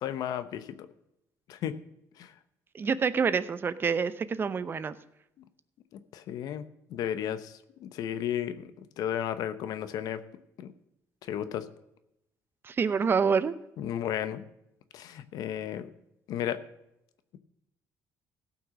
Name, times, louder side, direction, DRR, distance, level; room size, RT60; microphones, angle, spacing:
voice 1, 0.0-0.9 1.5-1.7 2.2-2.3 6.1-6.6 6.9-10.2 10.6-10.7 11.2-11.6 13.8-14.4 14.9-15.9 16.3-16.6, left 10 dB, 70° left, 12 dB, 0.9 m, -33 dB
voice 2, 2.7-4.9 12.6-13.5, right 5 dB, 35° right, 14 dB, 0.7 m, -27 dB
16.5 x 5.9 x 6.3 m, 0.84 s
cardioid pair, 105°, 7 cm